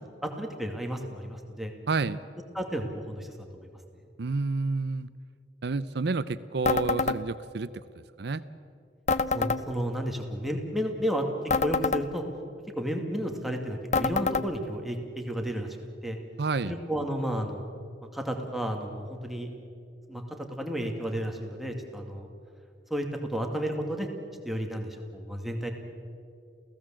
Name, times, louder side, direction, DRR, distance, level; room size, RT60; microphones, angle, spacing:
voice 1, 0.2-1.7 2.5-3.3 3.5-3.7 9.3-12.3 12.8-15.8 16.0-16.2 16.7-17.6 18.0-19.5 20.1-22.3 22.9-24.1 24.4-25.7, equal, ahead, 2 dB, 2.3 m, -32 dB
voice 2, 1.9-2.2 4.2-5.1 5.6-7.7 8.2-8.4 16.4-16.8, right 3 dB, 65° right, 14 dB, 0.6 m, -29 dB
sound 1, 6.7-7.2 9.1-9.6 11.5-12.0 13.9-14.5, left 4 dB, 40° left, 0.8 m, -26 dB
28.5 x 16.5 x 7.6 m, 2.3 s
head